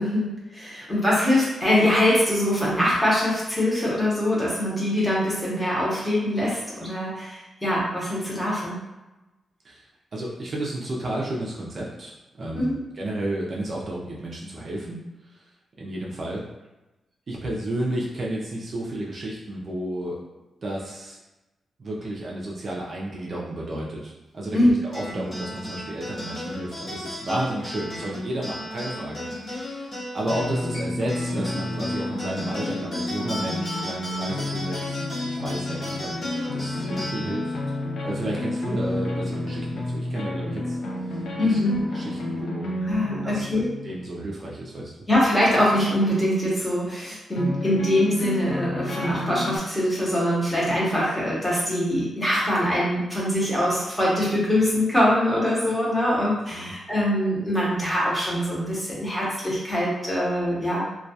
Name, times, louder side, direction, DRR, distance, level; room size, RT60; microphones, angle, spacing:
voice 1, 0.0-8.8 12.5-12.8 24.5-24.7 41.4-41.9 42.8-43.7 45.1-60.8, left 1 dB, 10° left, -6 dB, 0.8 m, -23 dB
voice 2, 10.1-15.0 15.8-16.4 17.3-20.2 20.6-21.2 21.8-37.5 38.0-40.8 41.1-41.6 41.9-42.8 43.1-43.5 43.8-45.0 56.5-56.8, right 1 dB, 45° right, -4 dB, 0.4 m, -32 dB
sound 1, 24.9-39.7, left 1 dB, 45° left, 0.9 m, -35 dB
sound 2, 30.3-44.0 45.2-45.3 45.8-45.9 46.3-46.4 47.3-49.6, left 2 dB, 85° left, 0.5 m, -31 dB
2.2 x 2.2 x 2.7 m, 1.0 s
wide cardioid pair, 125°, 0 cm